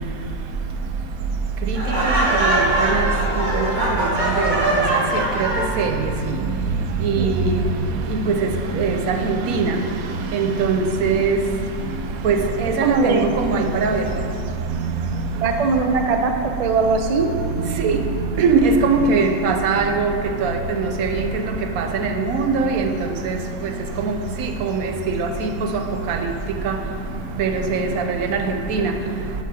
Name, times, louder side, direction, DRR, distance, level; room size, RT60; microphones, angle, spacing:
Laughter, 1.7-5.8, right 1 dB, 35° right, 1.3 m, -21 dB
voice 1, 1.7-3.1 3.4-3.7 4.0-5.5 5.8-6.1 7.0-7.6 8.1-9.8 10.3-11.4 12.2-14.0 17.8-18.0 18.4-20.1 20.4-21.4 21.8-22.9 23.2-23.7 24.0-26.3 26.6-26.7 27.4-28.9, right 4 dB, 75° right, 5 dB, 1.1 m, -21 dB
voice 2, 12.8-13.4 15.4-17.3, right 4 dB, 55° right, 5 dB, 0.4 m, -20 dB
8.5 x 5.5 x 6.2 m, 2.6 s
omnidirectional pair, 1.5 m